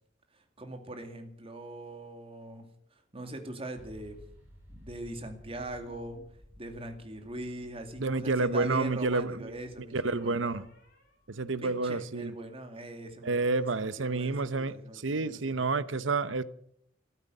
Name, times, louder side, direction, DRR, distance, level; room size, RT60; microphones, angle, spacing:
voice 1, 0.3-2.7 3.1-4.2 4.7-6.2 6.6-10.6 11.6-13.4 14.0-15.6, right 1 dB, 30° right, 2.3 m, -41 dB
sound 1, 3.7-11.3, equal, 10° right, 7.1 m, -55 dB
sound 2, 5.8-6.3 8.2-12.0, equal, 50° left, 6.8 m, -60 dB
voice 2, 8.0-9.5 9.9-10.6 11.3-12.3 13.2-16.4, right 3 dB, 75° right, 0.9 m, -29 dB
13.5 x 13.5 x 7.8 m
head